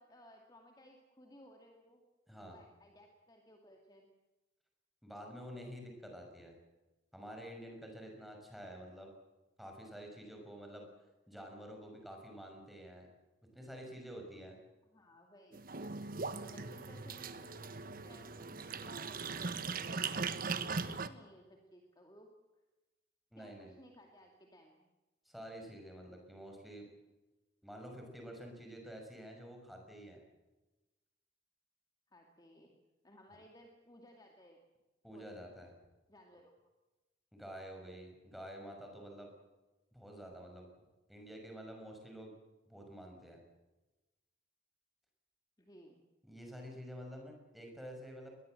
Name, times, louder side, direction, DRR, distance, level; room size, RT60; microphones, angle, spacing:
voice 1, 0.0-2.0 2.4-4.1 14.9-15.7 16.3-20.2 20.6-22.3 23.4-24.9 32.1-32.7 33.0-34.6 35.1-35.3 36.1-36.5 45.6-46.0, equal, 20° left, 2 dB, 2.4 m, -59 dB
voice 2, 2.3-2.6 5.0-6.5 7.1-9.1 9.6-10.9 11.3-13.1 13.5-14.6 23.3-23.7 25.2-26.9 27.6-30.2 35.0-35.7 37.3-39.3 39.9-40.7 41.1-42.3 42.7-43.4 46.2-48.3, equal, ahead, 2 dB, 6.1 m, -49 dB
sound 1, 15.5-21.1, right 4 dB, 45° right, 1.3 m, -40 dB
22.0 x 21.0 x 7.8 m, 1.1 s
head